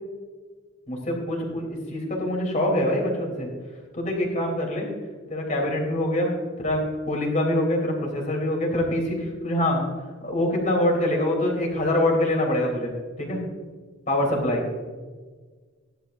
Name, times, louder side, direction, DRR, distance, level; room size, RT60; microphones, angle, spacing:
voice 1, 0.9-3.5 3.9-4.9 5.3-6.3 6.6-9.8 10.2-13.4 14.1-14.6, left 1 dB, 40° left, 0 dB, 3.2 m, -25 dB
16.5 x 11.0 x 2.6 m, 1.5 s
head